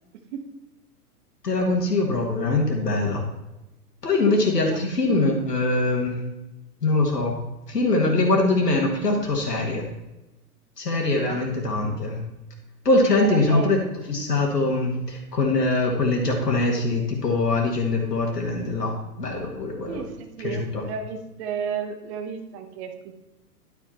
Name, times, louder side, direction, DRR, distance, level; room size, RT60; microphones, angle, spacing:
voice 1, 1.4-3.2 4.0-6.2 6.8-7.4 7.7-9.9 10.8-12.2 12.9-13.8 14.1-20.0 20.4-20.8, left 2 dB, 85° left, 1 dB, 1.8 m, -23 dB
voice 2, 13.1-13.9 19.9-23.1, right 6 dB, 45° right, 7 dB, 1.4 m, -33 dB
11.5 x 4.9 x 4.4 m, 0.97 s
figure-of-eight pair, 115°, 47 cm